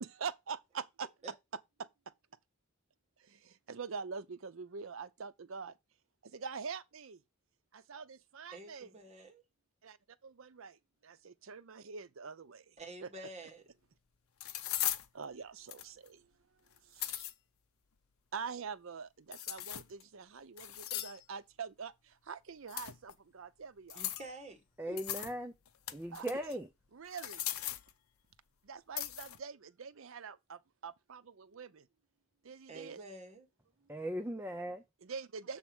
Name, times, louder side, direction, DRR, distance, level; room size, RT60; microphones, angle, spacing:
voice 1, 0.0-1.1 1.8-1.9 3.2-5.7 6.2-7.2 7.7-8.9 9.8-10.0 10.2-12.7 13.0-13.1 15.1-16.3 16.8-17.3 18.3-24.1 26.1-26.5 26.9-27.4 28.6-31.9 32.4-33.0 35.0-35.6, right 5 dB, 65° right, 0.6 m, -45 dB
voice 2, 8.5-9.4 12.8-13.6 24.0-24.6 24.9-25.0 32.7-33.5, right 2 dB, 30° right, 1.8 m, -48 dB
sound 1, 13.5-13.6 14.4-15.1 15.7-16.1 16.8-17.3 19.3-20.0 20.6-21.2 22.7-23.1 23.9-24.3 25.0-25.3 25.7-26.5 27.1-27.9 29.0-29.4, left 13 dB, 80° left, 0.6 m, -38 dB
voice 3, 24.8-25.5 25.9-26.7 33.9-34.8, equal, 10° right, 0.6 m, -38 dB
7.2 x 3.6 x 6.1 m
head